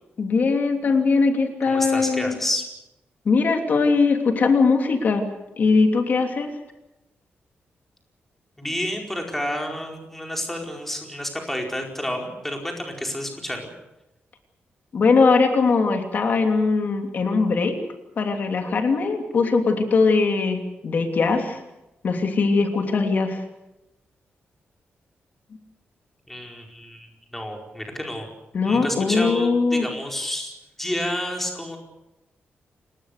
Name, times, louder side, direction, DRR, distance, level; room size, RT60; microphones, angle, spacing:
voice 1, 0.2-2.4 3.2-5.3 5.6-6.5 14.9-17.8 18.2-21.6 22.0-23.4 28.5-29.8, left 4 dB, 45° left, 5 dB, 3.0 m, -20 dB
voice 2, 1.7-2.6 8.6-13.7 26.3-28.3 28.6-31.8, left 1 dB, 5° left, 2 dB, 4.6 m, -30 dB
30.0 x 19.0 x 6.7 m, 0.96 s
wide cardioid pair, 175°, 4 cm